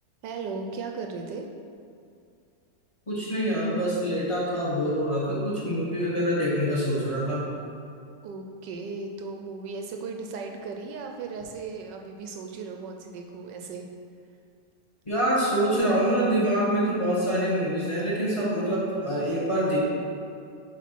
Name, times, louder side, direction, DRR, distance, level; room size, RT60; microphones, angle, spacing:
voice 1, 0.2-1.5 8.2-13.9, right 4 dB, 75° right, 3 dB, 1.2 m, -36 dB
voice 2, 3.1-7.4 15.0-19.8, equal, 20° left, -7 dB, 1.5 m, -25 dB
7.4 x 3.6 x 6.0 m, 2.5 s
omnidirectional pair, 2.0 m